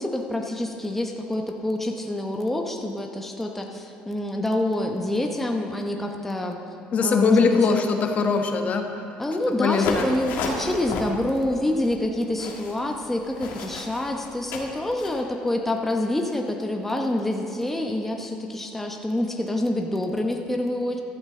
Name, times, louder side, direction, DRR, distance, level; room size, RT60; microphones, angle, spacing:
voice 1, 0.0-6.6 7.0-7.6 9.2-21.0, left 1 dB, 5° left, 2 dB, 0.9 m, -27 dB
voice 2, 6.9-8.8 9.6-10.1, left 5 dB, 45° left, 4 dB, 1.2 m, -21 dB
sound 1, 9.7-15.2, left 3 dB, 70° left, 1.9 m, -33 dB
14.5 x 12.5 x 3.8 m, 2.6 s
cardioid pair, 110°, 4 cm